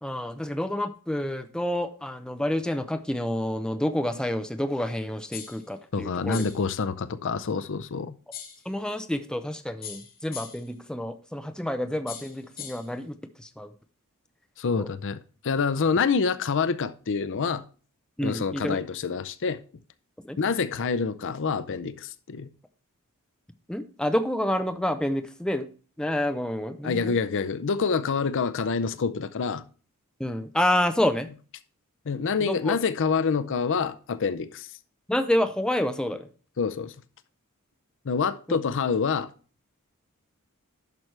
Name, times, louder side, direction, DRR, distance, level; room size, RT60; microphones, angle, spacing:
voice 1, 0.0-6.4 8.7-13.7 14.8-14.9 18.2-18.8 20.2-20.4 23.7-25.7 26.0-27.2 30.2-31.3 32.1-32.8 35.1-36.3 38.5-38.6, left 1 dB, 5° left, 0.6 m, -28 dB
sound 1, 5.3-5.7 6.3-6.7 8.3-8.7 9.8-10.7 12.1-12.9, left 9 dB, 45° left, 1.8 m, -40 dB
voice 2, 5.9-8.2 14.6-17.6 18.2-19.6 20.4-22.5 26.8-29.6 32.1-34.7 36.6-36.9 38.1-39.3, left 5 dB, 60° left, 0.6 m, -27 dB
10.5 x 6.0 x 3.3 m
head